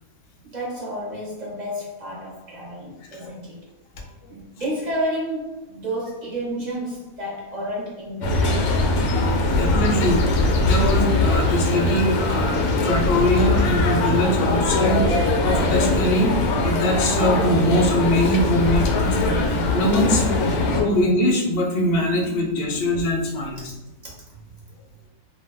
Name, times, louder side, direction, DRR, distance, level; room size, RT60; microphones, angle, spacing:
voice 1, 0.4-3.7 4.3-9.0 24.0-24.4, equal, 35° right, -5 dB, 0.8 m, -31 dB
sound 1, 8.2-20.8, left 2 dB, 85° left, 1.1 m, -21 dB
voice 2, 9.2-10.2 10.6-16.3 16.6-20.2 20.8-23.6, left 1 dB, 60° left, 0 dB, 0.6 m, -22 dB
sound 2, 18.5-23.4, left 1 dB, 65° right, 1.0 m, -34 dB
2.5 x 2.2 x 3.2 m, 0.94 s
omnidirectional pair, 1.5 m